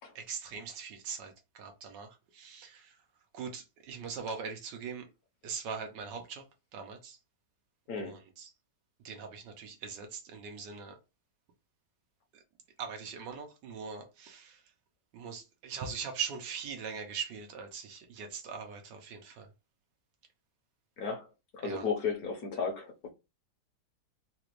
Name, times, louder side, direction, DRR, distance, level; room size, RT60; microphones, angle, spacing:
voice 1, 0.1-2.1 2.3-2.8 3.3-5.1 5.4-6.4 6.7-7.2 7.9-8.5 9.0-10.9 12.8-14.6 15.1-19.5 21.6-21.8, right 6 dB, 90° right, 1.5 m, -41 dB
voice 2, 21.0-21.3 21.5-23.1, left 5 dB, 60° left, 1.3 m, -34 dB
4.0 x 2.5 x 3.0 m
omnidirectional pair, 1.9 m